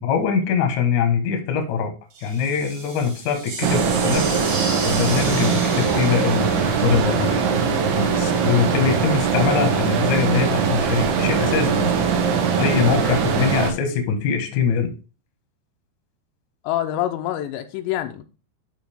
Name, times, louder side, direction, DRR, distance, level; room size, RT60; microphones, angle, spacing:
voice 1, 0.0-1.9 2.2-4.5 4.8-7.4 8.0-11.9 12.6-14.9, left 6 dB, 60° left, 2.1 m, -23 dB
sound 1, 2.1-8.0, right 3 dB, 45° right, 2.3 m, -33 dB
sound 2, 3.6-13.7, right 6 dB, 70° right, 3.1 m, -21 dB
voice 2, 16.6-18.2, left 12 dB, 85° left, 3.0 m, -26 dB
11.5 x 4.1 x 3.5 m
omnidirectional pair, 5.1 m